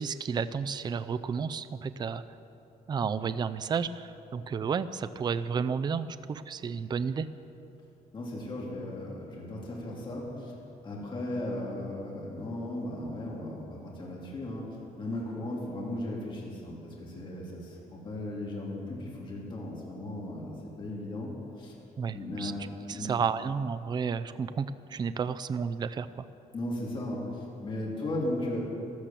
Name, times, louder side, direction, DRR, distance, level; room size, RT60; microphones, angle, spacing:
voice 1, 0.0-2.2 2.9-7.3 22.0-22.5 22.9-26.3, right 6 dB, 30° right, 13 dB, 0.4 m, -32 dB
voice 2, 8.1-10.5 10.8-14.6 15.0-21.7 22.1-22.5 22.9-23.1 26.5-28.6, left 1 dB, 30° left, -4 dB, 3.2 m, -36 dB
13.0 x 13.0 x 7.5 m, 2.8 s
cardioid pair, 150°, 15 cm